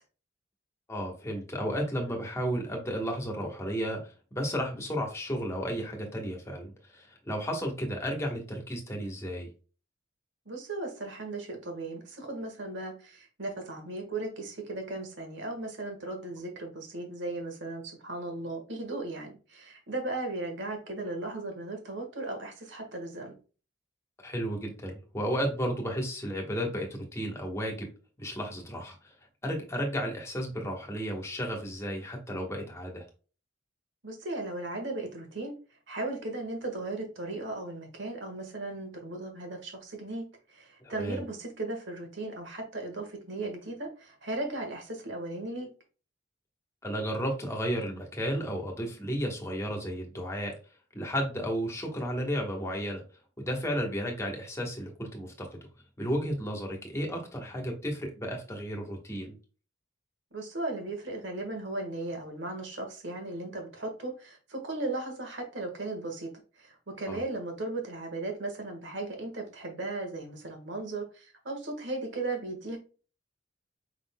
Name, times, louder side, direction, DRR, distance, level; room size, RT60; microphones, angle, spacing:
voice 1, 0.9-4.0 4.3-9.5 24.2-27.9 28.2-29.1 29.4-33.0 40.8-41.2 46.8-50.5 50.9-53.0 53.4-55.7 56.0-59.3 67.0-67.2, equal, 15° left, 0 dB, 1.2 m, -33 dB
voice 2, 10.4-23.3 34.0-35.5 35.9-45.7 60.3-66.3 66.6-72.8, right 2 dB, 65° right, 3 dB, 1.4 m, -36 dB
5.2 x 3.7 x 2.2 m, 0.35 s
head